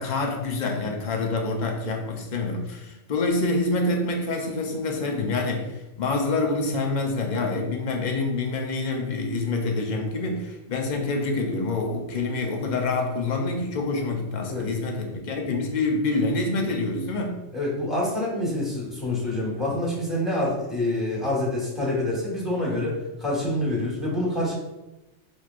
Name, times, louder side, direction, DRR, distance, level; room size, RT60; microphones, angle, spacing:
voice 1, 0.0-17.4, left 3 dB, 45° left, 1 dB, 0.6 m, -26 dB
voice 2, 17.5-24.5, left 1 dB, ahead, -5 dB, 1.3 m, -26 dB
5.3 x 3.1 x 2.4 m, 1.0 s
omnidirectional pair, 1.4 m